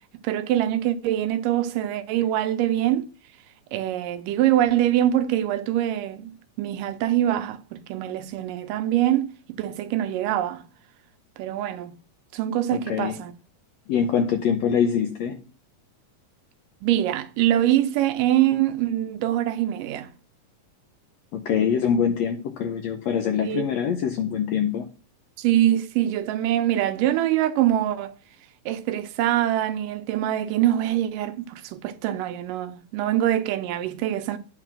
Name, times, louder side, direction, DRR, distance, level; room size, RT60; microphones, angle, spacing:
voice 1, 0.2-3.1 3.7-6.3 6.6-9.3 9.6-10.6 11.4-12.0 12.3-13.3 16.8-20.1 23.4-23.7 25.4-28.1 28.7-34.4, right 12 dB, 80° right, 2.4 m, -24 dB
voice 2, 12.7-13.2 13.9-15.4 21.3-24.9, left 7 dB, 75° left, 1.6 m, -24 dB
8.9 x 3.9 x 6.0 m
omnidirectional pair, 3.8 m